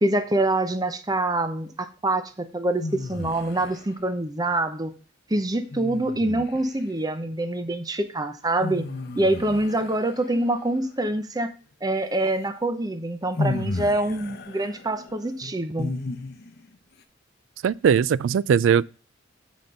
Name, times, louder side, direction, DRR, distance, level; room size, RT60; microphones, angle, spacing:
voice 1, 0.0-4.9 5.3-8.9 9.2-11.5 11.8-15.9, right 1 dB, 20° right, 0.8 m, -25 dB
sound 1, 2.8-3.9 5.7-6.9 8.6-10.6 12.4-12.5 13.4-16.7, left 2 dB, 55° left, 0.8 m, -33 dB
voice 2, 17.6-18.8, right 7 dB, 70° right, 0.3 m, -19 dB
8.1 x 5.1 x 5.3 m
head